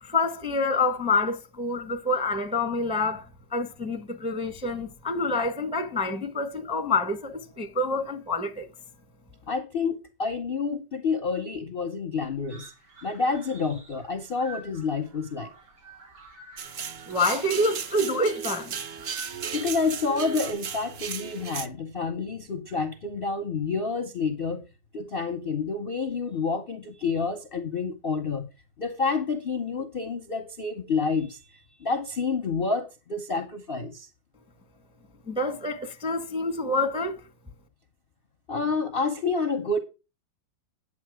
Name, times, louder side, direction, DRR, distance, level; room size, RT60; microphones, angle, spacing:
voice 1, 0.0-8.7 17.1-18.8 35.3-37.2, left 2 dB, 5° right, 0.6 m, -27 dB
voice 2, 9.5-12.7 13.0-15.5 19.5-24.7 24.9-28.5 28.8-34.1 38.5-39.8, left 4 dB, 45° left, 0.7 m, -29 dB
sound 1, 12.5-20.5, right 3 dB, 85° right, 3.6 m, -49 dB
sound 2, 16.6-21.7, right 7 dB, 65° right, 0.6 m, -35 dB
9.9 x 7.2 x 4.8 m
omnidirectional pair, 2.1 m